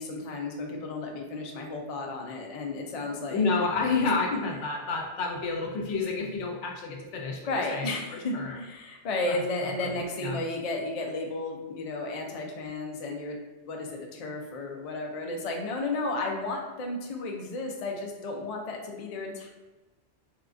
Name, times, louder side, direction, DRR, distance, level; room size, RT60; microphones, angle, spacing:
voice 1, 0.0-3.4 7.5-13.4 13.7-19.5, left 2 dB, 55° left, 1 dB, 0.4 m, -33 dB
voice 2, 2.9-8.6 9.2-9.4 9.9-10.4, left 4 dB, 80° left, 1 dB, 1.0 m, -30 dB
3.6 x 2.4 x 2.4 m, 1.1 s
omnidirectional pair, 1.2 m